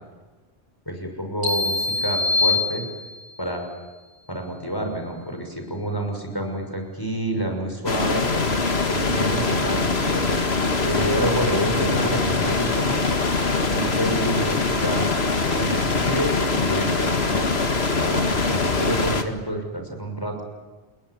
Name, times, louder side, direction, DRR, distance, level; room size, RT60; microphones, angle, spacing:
voice 1, 0.8-2.9 3.4-3.7 4.3-8.6 8.9-10.4 10.8-13.1 13.7-15.1 15.6-17.5 18.0-20.4, right 1 dB, 20° left, 4 dB, 6.1 m, -28 dB
sound 1, 1.4-3.4, left 3 dB, 75° right, 6.9 m, -24 dB
sound 2, 7.9-19.2, left 3 dB, 70° left, 2.2 m, -23 dB
28.0 x 21.5 x 9.8 m, 1.3 s
omnidirectional pair, 1.1 m